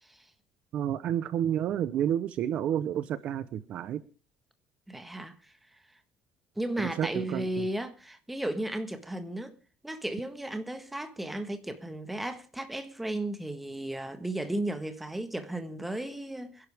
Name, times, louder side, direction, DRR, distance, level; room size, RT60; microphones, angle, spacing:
voice 1, 0.7-4.0 6.8-7.7, right 10 dB, 50° right, 0.8 m, -30 dB
voice 2, 4.9-5.5 6.6-9.5 9.8-16.7, right 1 dB, 5° right, 1.5 m, -35 dB
25.0 x 11.0 x 3.5 m
cardioid pair, 170°, 3 cm